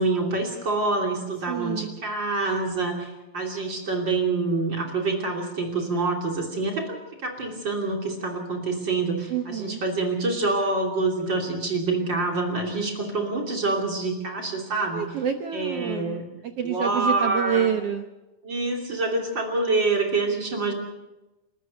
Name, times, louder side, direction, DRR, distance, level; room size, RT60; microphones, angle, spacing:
voice 1, 0.0-7.0 7.2-15.1 15.5-16.3 16.6-17.7 18.4-20.7, right 3 dB, 30° right, 1 dB, 3.2 m, -26 dB
voice 2, 1.5-2.0 9.3-9.8 14.9-18.1, right 8 dB, 75° right, 5 dB, 1.4 m, -28 dB
30.0 x 13.5 x 6.6 m, 1.0 s
omnidirectional pair, 4.2 m